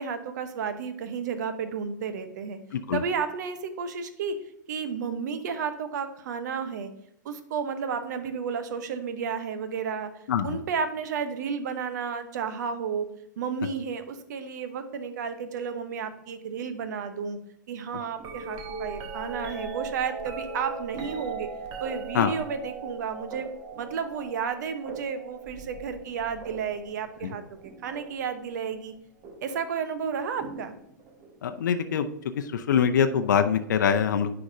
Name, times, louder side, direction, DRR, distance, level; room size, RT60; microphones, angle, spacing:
voice 1, 0.0-2.6 2.9-4.4 4.7-6.9 7.2-10.1 10.4-13.1 13.4-17.4 17.7-21.5 21.8-23.5 23.8-27.4 27.8-28.9 29.4-30.7, right 6 dB, 65° right, 9 dB, 0.9 m, -32 dB
sound 1, 18.2-28.3 29.2-29.6 30.4-31.4 33.2-33.3, right 4 dB, 40° right, 1.3 m, -39 dB
voice 2, 31.4-32.1 32.3-34.3, left 7 dB, 70° left, 9 dB, 0.6 m, -24 dB
9.8 x 4.8 x 2.7 m, 0.74 s
hypercardioid pair, 100°, 10 cm